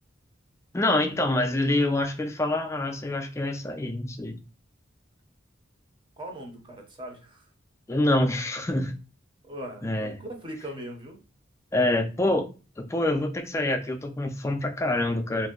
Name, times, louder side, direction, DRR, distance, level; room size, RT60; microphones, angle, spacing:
voice 1, 0.7-4.4 7.9-8.9 9.8-10.1 11.7-12.5 12.8-15.5, left 1 dB, 15° left, 5 dB, 0.3 m, -26 dB
voice 2, 6.2-7.5 9.4-11.2, right 1 dB, 25° right, 3 dB, 0.6 m, -40 dB
2.6 x 2.1 x 3.6 m, 0.34 s
head